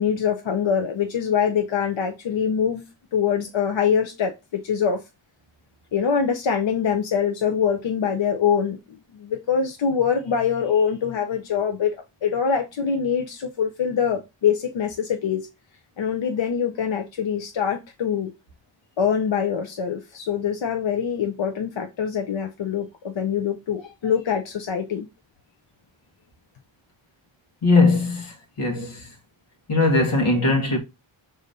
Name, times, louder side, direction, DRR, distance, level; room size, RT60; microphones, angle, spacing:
voice 1, 0.0-2.8 3.1-5.0 5.9-8.8 9.1-12.0 12.2-15.5 16.0-18.3 19.0-25.1, left 7 dB, 65° left, 0.7 m, -24 dB
voice 2, 27.6-29.1 29.7-30.8, left 3 dB, 85° left, 1.5 m, -20 dB
5.0 x 4.0 x 2.6 m
cardioid pair, 45°, 49 cm